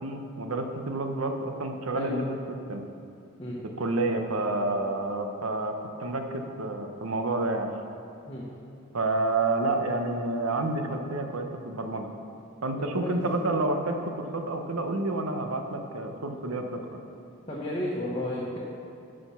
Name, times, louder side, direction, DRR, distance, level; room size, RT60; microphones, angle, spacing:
voice 1, 0.0-2.4 2.7-2.8 3.8-7.7 8.9-12.1 12.6-17.0, right 2 dB, 85° right, 5 dB, 0.9 m, -29 dB
voice 2, 12.8-13.2 17.5-18.6, left 1 dB, 25° left, -6 dB, 1.1 m, -32 dB
12.0 x 5.1 x 5.7 m, 2.5 s
head